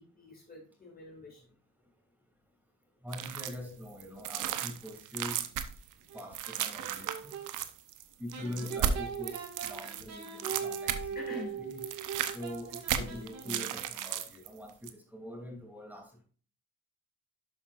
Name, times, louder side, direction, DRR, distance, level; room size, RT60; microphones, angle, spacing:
voice 1, 0.0-1.4 8.4-8.7 11.1-11.7 13.0-13.3, left 2 dB, 30° left, 2.4 m, -46 dB
voice 2, 3.0-5.4 6.1-7.4 8.2-11.8 12.3-16.2, left 1 dB, 5° right, 2.8 m, -43 dB
sound 1, 3.1-3.6 4.0-11.3 11.6-14.5 14.8-14.9, right 9 dB, 85° right, 0.8 m, -35 dB
sound 2, 6.1-7.5 8.3-13.8, right 6 dB, 60° right, 2.0 m, -41 dB
11.5 x 5.8 x 2.5 m
cardioid pair, 90°, 30 cm